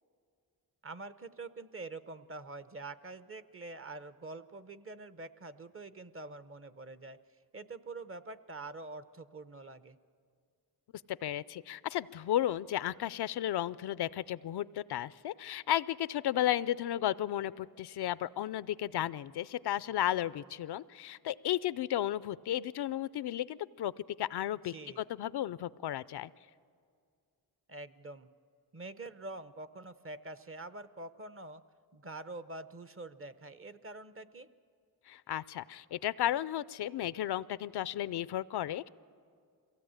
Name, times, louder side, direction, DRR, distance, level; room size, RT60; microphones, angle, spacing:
voice 1, 0.8-7.2 7.5-10.0 24.6-25.0 27.7-28.3 28.7-31.6 31.9-34.5, right 2 dB, 35° right, 13 dB, 0.8 m, -45 dB
voice 2, 11.1-23.9 24.2-26.3 35.1-38.9, left 12 dB, 75° left, 18 dB, 0.5 m, -34 dB
23.0 x 16.5 x 8.8 m, 2.3 s
cardioid pair, 70°, 40 cm